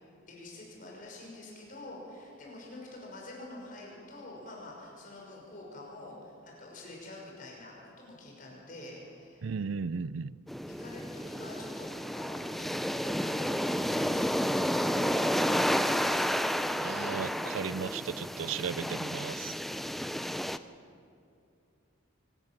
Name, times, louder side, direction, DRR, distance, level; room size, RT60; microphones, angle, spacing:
voice 1, 0.3-9.5 10.7-16.4, left 1 dB, 45° left, -2 dB, 6.1 m, -47 dB
voice 2, 9.4-10.4 16.8-19.5, right 6 dB, 80° right, 19 dB, 0.4 m, -35 dB
sound 1, 10.5-20.6, equal, ahead, 0.4 m, -31 dB
24.0 x 13.5 x 9.2 m, 2.5 s
head